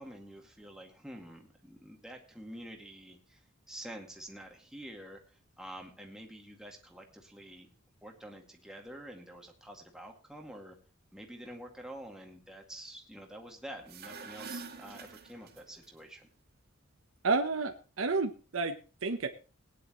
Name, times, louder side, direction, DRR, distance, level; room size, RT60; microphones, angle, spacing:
voice 1, 0.0-3.4 3.7-7.7 8.0-10.8 11.1-16.3, right 1 dB, 5° right, 1 dB, 2.1 m, -48 dB
sound 1, 13.8-15.9, right 4 dB, 50° right, 2.1 m, -46 dB
voice 2, 17.2-19.3, right 3 dB, 75° right, 6 dB, 0.9 m, -31 dB
18.5 x 10.0 x 3.1 m, 0.34 s
head